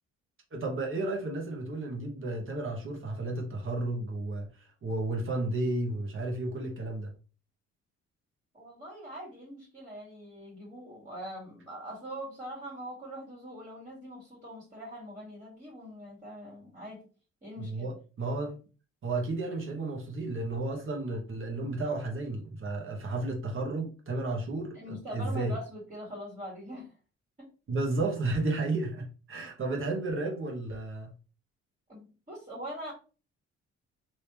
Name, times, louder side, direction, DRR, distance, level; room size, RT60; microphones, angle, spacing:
voice 1, 0.5-4.5 4.8-7.1 17.6-18.5 19.0-25.5 27.7-31.1, right 2 dB, 45° right, 1 dB, 1.3 m, -32 dB
voice 2, 8.5-17.0 17.4-17.9 24.7-26.9 27.4-27.5 31.9-32.9, equal, 25° right, -5 dB, 2.0 m, -43 dB
3.4 x 3.0 x 3.0 m, 0.35 s
cardioid pair, 90°, 30 cm